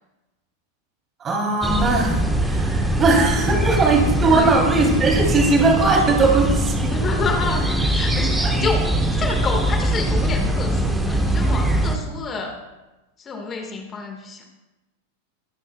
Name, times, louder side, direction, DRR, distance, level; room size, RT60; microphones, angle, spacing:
voice 1, 1.2-6.9 8.4-8.5, right 3 dB, 25° right, 1 dB, 3.2 m, -19 dB
sound 1, 1.6-12.0, right 1 dB, 5° right, 1.4 m, -22 dB
voice 2, 4.2-4.5 6.9-8.9 9.1-12.6 13.2-14.4, left 4 dB, 25° left, 3 dB, 1.7 m, -28 dB
23.5 x 11.5 x 2.3 m, 1.1 s
figure-of-eight pair, 90°, 0 cm